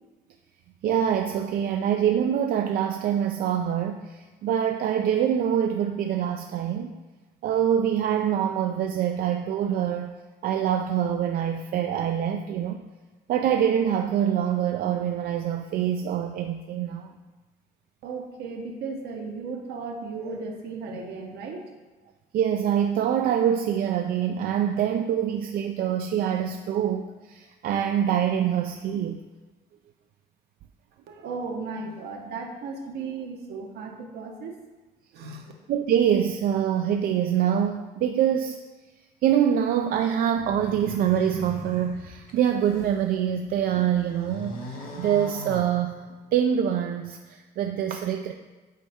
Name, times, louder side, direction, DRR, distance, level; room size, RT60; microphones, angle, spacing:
voice 1, 0.8-6.9 7.4-10.1 10.4-12.8 13.3-17.1 22.3-29.2 35.7-38.6 39.2-46.0 46.3-48.3, right 9 dB, 60° right, 5 dB, 0.4 m, -25 dB
voice 2, 18.0-21.6 31.1-34.5 35.1-35.5, right 4 dB, 75° right, 2 dB, 1.1 m, -35 dB
sound 1, 40.4-43.0 43.5-46.3, left 1 dB, 55° left, 1.3 m, -40 dB
8.3 x 4.2 x 3.6 m, 1.2 s
cardioid pair, 110°, 17 cm